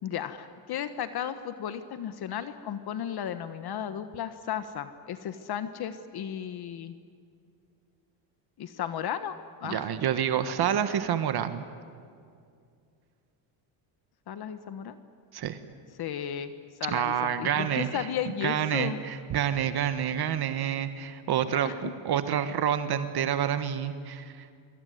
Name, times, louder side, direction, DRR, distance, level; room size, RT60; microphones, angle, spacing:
voice 1, 0.0-7.0 8.6-9.4 9.6-9.9 10.4-10.5 14.3-15.0 16.0-16.5 16.8-19.0 21.6-21.9, left 9 dB, 50° left, 10 dB, 1.4 m, -34 dB
voice 2, 9.6-11.6 15.3-15.6 16.9-18.1 18.4-24.4, right 9 dB, 50° right, 9 dB, 1.5 m, -28 dB
24.5 x 24.5 x 9.5 m, 2.3 s
cardioid pair, 115°, 49 cm